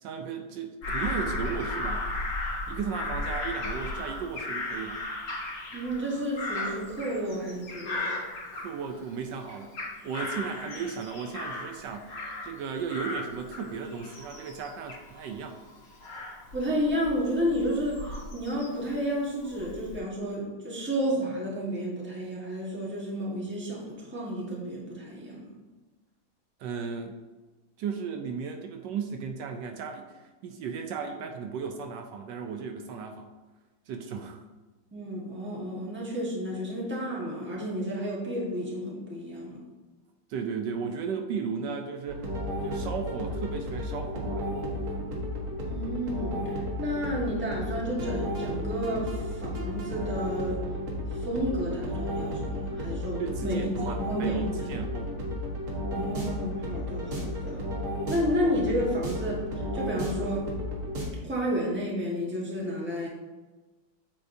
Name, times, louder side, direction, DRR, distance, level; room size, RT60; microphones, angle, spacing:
voice 1, 0.0-2.1 2.7-5.0 8.5-9.8 10.0-15.6 26.6-27.2 27.8-33.3 33.9-34.4 40.3-42.3 42.6-44.5 53.2-55.2, right 6 dB, 75° right, 5 dB, 1.2 m, -35 dB
Bird vocalization bird call bird song / Crow, 0.8-9.1 9.5-12.6 12.9-18.9 19.4-20.0, left 2 dB, 75° left, 1.8 m, -36 dB
voice 2, 5.7-8.1 16.5-25.5 34.9-39.6 45.6-50.6 51.1-53.7 54.0-54.7 55.9-57.6 58.1-60.6 61.2-63.1, equal, 10° right, -4 dB, 1.0 m, -31 dB
sound 1, 42.1-61.1, equal, 55° right, 1.7 m, -33 dB
7.7 x 4.6 x 2.6 m, 1.2 s
omnidirectional pair, 2.0 m